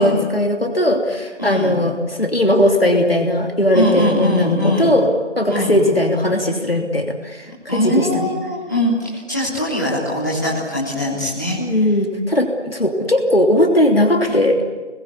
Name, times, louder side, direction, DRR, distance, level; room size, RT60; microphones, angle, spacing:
voice 1, 0.0-5.1 5.4-8.3 11.6-14.6, left 1 dB, 50° left, 3 dB, 3.0 m, -18 dB
voice 2, 1.4-1.8 3.7-4.9 5.5-5.8 7.7-11.6, left 1 dB, 15° left, -6 dB, 3.4 m, -21 dB
25.0 x 21.5 x 8.5 m, 1.4 s
figure-of-eight pair, 180°, 36 cm